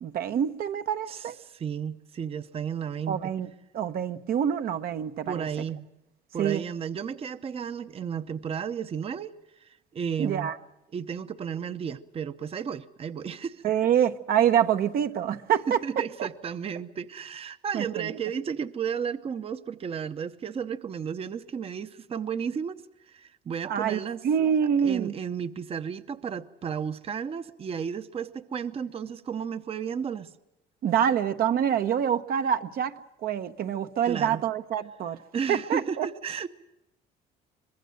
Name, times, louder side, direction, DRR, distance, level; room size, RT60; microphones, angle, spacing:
voice 1, 0.0-1.3 3.1-3.5 3.7-5.5 6.4-6.6 10.2-10.6 13.6-15.8 16.2-16.3 17.7-18.2 23.7-25.1 30.8-32.9 33.2-35.2 35.5-36.1, right 9 dB, 60° right, 1.0 m, -26 dB
voice 2, 1.1-3.3 5.3-5.9 6.3-10.5 10.9-13.6 15.7-24.2 24.8-30.4 34.0-34.5 35.3-36.5, right 7 dB, 35° right, 0.8 m, -33 dB
24.5 x 21.0 x 7.8 m
cardioid pair, 110°, 17 cm